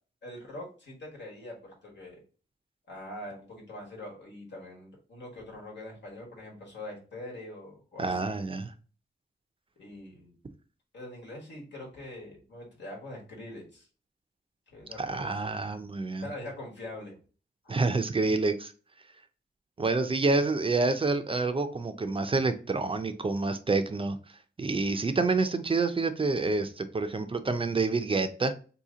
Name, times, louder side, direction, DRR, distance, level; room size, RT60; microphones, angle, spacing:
voice 1, 0.2-2.2 2.9-8.4 9.8-10.4 10.9-13.9 14.7-15.4 16.2-17.2, left 1 dB, 80° left, 1.4 m, -43 dB
voice 2, 8.0-8.7 15.0-16.3 17.7-18.7 19.8-24.2 24.6-28.6, right 3 dB, 30° right, 0.4 m, -28 dB
2.8 x 2.7 x 3.7 m
wide cardioid pair, 90°, 18 cm